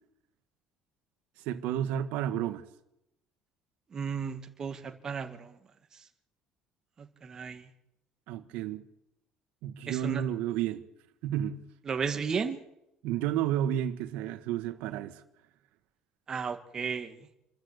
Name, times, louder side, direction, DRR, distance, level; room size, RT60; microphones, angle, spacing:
voice 1, 1.4-2.6 8.3-8.8 9.6-10.8 11.2-11.6 13.0-15.2, right 11 dB, 75° right, 1.6 m, -31 dB
voice 2, 3.9-5.5 7.0-7.6 9.9-10.2 11.9-12.6 16.3-17.1, right 6 dB, 25° right, 2.0 m, -34 dB
27.5 x 13.5 x 8.1 m
cardioid pair, 165°, 2 cm